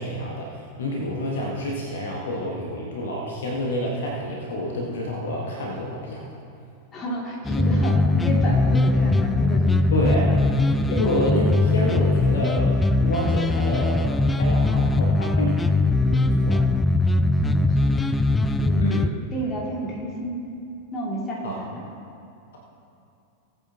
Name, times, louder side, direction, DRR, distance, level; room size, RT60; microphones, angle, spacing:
voice 1, 0.0-6.3 9.9-10.3 10.9-15.7 16.1-16.6 18.8-19.1 21.4-21.6, left 1 dB, 60° left, -2 dB, 1.5 m, -28 dB
voice 2, 6.9-9.9 10.2-10.3 10.9-11.0 17.5-18.0 18.6-18.8 19.3-20.4 20.9-21.9, right 1 dB, 25° left, -3 dB, 2.7 m, -31 dB
sound 1, 7.4-19.1, left 2 dB, 10° left, 0.4 m, -21 dB
18.5 x 8.1 x 3.0 m, 2.6 s
figure-of-eight pair, 90°, 0 cm